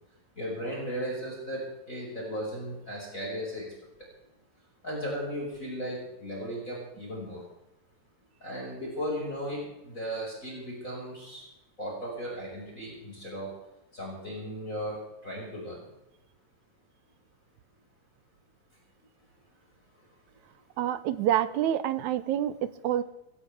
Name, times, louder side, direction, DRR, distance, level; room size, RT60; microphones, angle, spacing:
voice 1, 0.4-3.7 4.8-7.4 8.4-11.4 11.8-13.5 13.9-15.0 15.2-15.8, equal, 20° left, -4 dB, 6.0 m, -36 dB
voice 2, 20.8-23.0, right 11 dB, 75° right, 13 dB, 1.9 m, -27 dB
22.0 x 16.5 x 3.6 m, 0.91 s
omnidirectional pair, 3.9 m